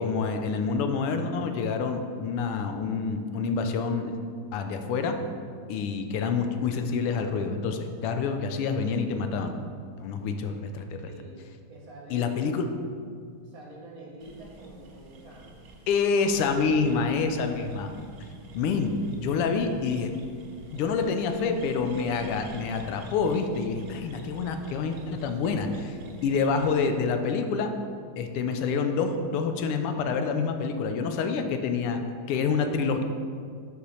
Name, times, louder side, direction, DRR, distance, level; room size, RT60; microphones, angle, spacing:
voice 1, 0.0-4.2 4.5-5.2 5.7-9.5 10.0-11.0 12.1-12.6 15.9-17.9 18.5-20.1 20.7-26.0 26.2-27.7 28.2-32.0 32.3-33.0, left 5 dB, 90° left, 6 dB, 1.6 m, -27 dB
voice 2, 11.0-11.4 11.7-12.4 13.4-15.6, right 2 dB, 50° right, -2 dB, 1.3 m, -46 dB
sound 1, 14.2-26.9, right 1 dB, 65° right, 0.7 m, -46 dB
6.8 x 4.9 x 5.5 m, 2.2 s
omnidirectional pair, 2.4 m